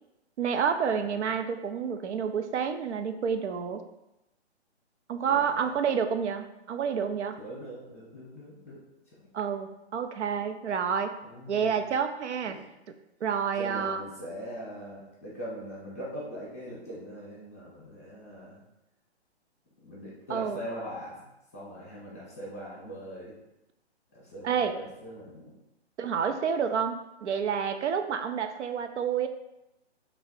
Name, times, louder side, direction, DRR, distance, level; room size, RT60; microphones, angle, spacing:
voice 1, 0.4-3.8 5.1-7.4 9.3-11.1 11.5-12.6 13.2-14.0 20.3-20.7 24.4-24.8 26.0-29.3, right 7 dB, 85° right, 7 dB, 0.5 m, -29 dB
voice 2, 5.2-5.7 7.4-8.8 11.2-11.8 12.4-12.6 13.5-18.6 19.8-21.2 21.5-23.3 24.1-25.6, equal, 15° left, -9 dB, 0.6 m, -41 dB
3.1 x 2.6 x 4.2 m, 0.91 s
hypercardioid pair, 175°, 34 cm